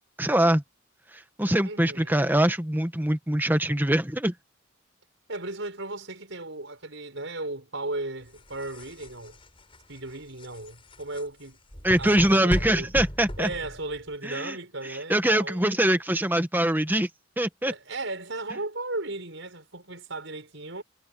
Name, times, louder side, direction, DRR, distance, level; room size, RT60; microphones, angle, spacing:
voice 1, 0.2-0.6 1.1-4.3 11.8-13.5 14.2-14.6 14.9-17.1 17.4-17.7, right 1 dB, 10° right, 1.4 m, -23 dB
voice 2, 1.6-2.1 5.3-9.4 9.9-11.6 12.0-12.9 13.4-15.9 17.6-20.8, right 2 dB, 65° right, 6.2 m, -36 dB
sound 1, 8.3-14.2, equal, 25° left, 6.9 m, -36 dB
head